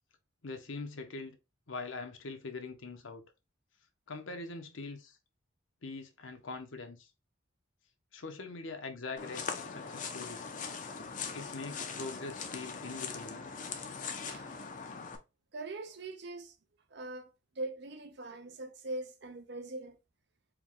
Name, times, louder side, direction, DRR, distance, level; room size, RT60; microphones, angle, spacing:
voice 1, 0.4-1.4 1.7-3.2 4.1-5.2 5.8-7.1 8.1-10.5 11.3-13.4, left 3 dB, 70° left, 0.8 m, -43 dB
sound 1, 9.2-15.2, left 5 dB, 40° left, 0.5 m, -41 dB
voice 2, 14.3-14.7 15.5-16.5 16.9-17.3 17.6-20.0, right 2 dB, 55° right, 0.6 m, -42 dB
4.6 x 2.3 x 3.6 m
head